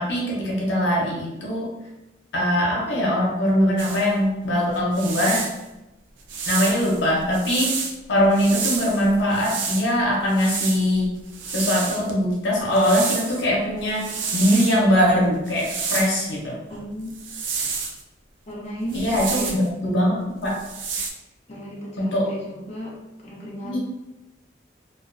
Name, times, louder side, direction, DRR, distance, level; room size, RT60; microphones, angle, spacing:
voice 1, 0.0-1.7 2.3-5.5 6.5-7.7 8.1-11.2 11.5-16.6 18.9-20.6 22.0-22.3 23.6-23.8, equal, 75° left, -3 dB, 0.6 m, -21 dB
sound 1, 3.8-4.1 4.8-5.6 6.3-7.9 8.3-9.9 10.3-12.1 12.7-13.5 13.8-14.8 15.5-16.3 17.1-18.0 18.9-19.7 20.5-21.1, right 5 dB, 80° right, 0.4 m, -29 dB
voice 2, 16.7-17.1 18.5-19.6 21.5-23.0 23.2-23.8, equal, 35° left, -6 dB, 0.6 m, -34 dB
2.3 x 2.2 x 2.5 m, 0.97 s
head